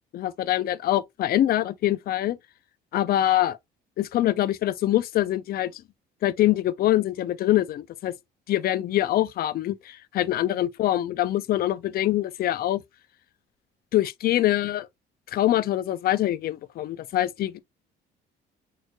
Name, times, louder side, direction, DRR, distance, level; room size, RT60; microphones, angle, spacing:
voice 1, 0.1-2.4 2.9-3.6 4.0-5.8 6.2-8.1 8.5-12.8 13.9-14.9 15.3-17.6, left 13 dB, 50° left, 0.5 m, -24 dB
6.2 x 3.3 x 2.2 m
cardioid pair, 135°, 20 cm